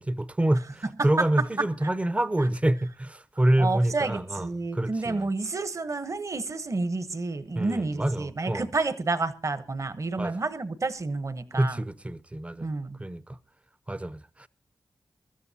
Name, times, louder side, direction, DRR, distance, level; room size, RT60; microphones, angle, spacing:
voice 1, 0.0-5.3 7.6-8.7 10.2-10.4 11.5-12.7 13.0-13.4 13.9-14.5, right 1 dB, 15° right, 0.6 m, -27 dB
voice 2, 1.0-1.5 1.8-1.9 3.6-11.8 12.6-13.0, right 3 dB, 40° right, 1.0 m, -30 dB
23.0 x 13.5 x 2.8 m
wide cardioid pair, 80°, 8 cm